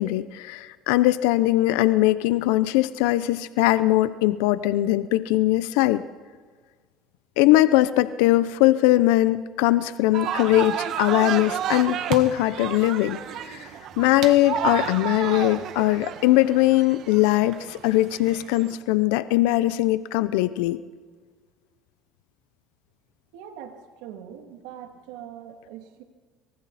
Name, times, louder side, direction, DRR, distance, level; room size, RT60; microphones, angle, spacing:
voice 1, 0.0-6.0 7.4-13.7 14.0-20.8, left 16 dB, 85° left, 14 dB, 0.7 m, -21 dB
sound 1, 10.1-18.7, right 9 dB, 60° right, 1.6 m, -31 dB
voice 2, 23.3-26.0, right 9 dB, 85° right, 4 dB, 2.8 m, -42 dB
27.0 x 24.5 x 4.3 m, 1.5 s
supercardioid pair, 110°, 0 cm